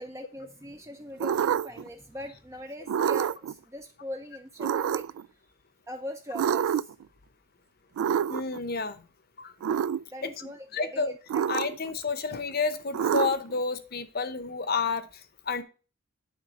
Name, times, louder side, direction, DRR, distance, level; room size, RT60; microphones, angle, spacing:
voice 1, 0.0-5.1 5.9-6.9 10.1-11.4, left 1 dB, 15° right, 5 dB, 0.5 m, -41 dB
sound 1, 1.2-1.9 2.9-3.5 4.6-5.2 6.3-7.0 8.0-8.6 9.6-10.0 11.3-11.9 12.9-13.6, right 8 dB, 90° right, 0.3 m, -27 dB
voice 2, 8.3-9.0 9.4-9.5 10.2-10.3 10.7-11.1 11.5-15.1 15.5-15.6, left 4 dB, 45° left, 12 dB, 0.8 m, -30 dB
9.3 x 3.7 x 6.3 m, 0.35 s
head